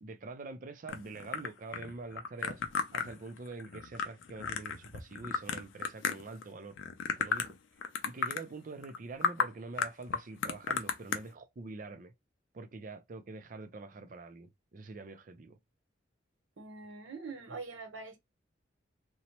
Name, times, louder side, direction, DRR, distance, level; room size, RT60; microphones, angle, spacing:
voice 1, 0.0-2.6 2.9-6.8 7.2-7.6 8.0-12.1 12.5-15.6, right 3 dB, 45° right, 0.4 m, -45 dB
sound 1, 0.9-6.4 6.8-7.6 7.8-8.4 8.8-9.0 9.2-9.5 9.8-11.2, left 6 dB, 85° left, 0.5 m, -33 dB
voice 2, 16.6-18.2, right 4 dB, 90° right, 0.8 m, -43 dB
2.9 x 2.1 x 2.8 m
head